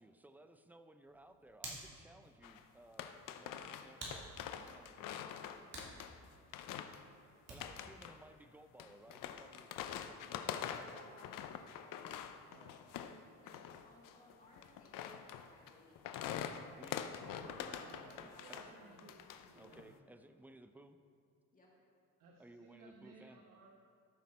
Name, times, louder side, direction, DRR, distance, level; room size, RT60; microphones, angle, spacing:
voice 1, 0.0-5.1 7.5-11.1 16.8-17.1 18.5-18.8 19.5-21.0 22.4-23.4, right 1 dB, 5° right, 9 dB, 0.5 m, -60 dB
Hands, 1.0-7.9, right 2 dB, 50° right, 2.8 m, -53 dB
Creaking Wooden Floor, 2.4-2.6 3.0-6.3 6.5-7.0 7.6-8.2 8.8-13.2 13.5-18.7 19.0-19.9, left 9 dB, 75° left, 0.7 m, -45 dB
voice 2, 5.7-6.1 10.8-13.1 13.4-16.3 17.6-19.0 19.6-19.9 21.5-21.7, left 1 dB, 25° left, -4 dB, 2.1 m, -64 dB
voice 3, 12.4-13.0 17.4-20.0 22.2-23.7, right 3 dB, 80° right, 0 dB, 1.1 m, -59 dB
13.5 x 6.3 x 4.2 m, 2.3 s
cardioid pair, 110°, 33 cm